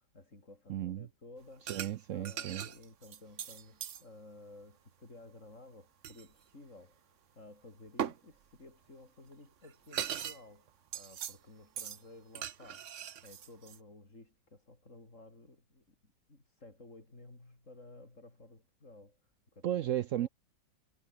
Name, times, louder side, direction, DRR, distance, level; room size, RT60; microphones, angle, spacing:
voice 1, 0.0-1.8 2.1-15.8 16.3-19.2 19.5-19.7 20.1-20.3, left 2 dB, 40° left, 5.8 m, -55 dB
voice 2, 0.7-1.1 1.7-2.6 19.6-20.3, right 12 dB, 80° right, 0.7 m, -34 dB
sound 1, 1.7-2.0 2.3-4.0 6.0-6.3 8.0-8.2 9.3-9.4 9.6-10.4 10.7-11.4 11.8-12.0 12.4-13.8, right 9 dB, 50° right, 1.0 m, -39 dB
omnidirectional pair, 1.9 m